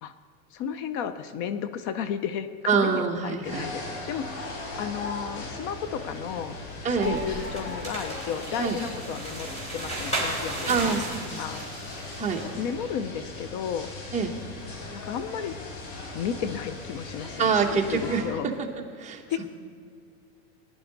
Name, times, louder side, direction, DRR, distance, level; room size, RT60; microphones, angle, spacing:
voice 1, 0.5-4.5 4.8-6.6 7.0-9.5 9.7-11.0 11.4-11.6 12.5-13.9 14.9-15.6 16.1-17.5 17.9-18.5 19.3-19.5, left 8 dB, 40° left, 12 dB, 0.6 m, -33 dB
voice 2, 2.7-3.7 6.8-7.2 8.6-8.8 10.7-11.4 12.2-12.4 14.1-14.3 17.4-18.7 19.0-19.5, right 5 dB, 15° right, 1 dB, 1.2 m, -26 dB
sound 1, 3.4-18.2, left 3 dB, 80° left, 4.1 m, -38 dB
sound 2, 7.0-12.5, right 1 dB, 15° left, 3.6 m, -35 dB
20.0 x 11.0 x 4.0 m, 2.3 s
supercardioid pair, 150°, 45 cm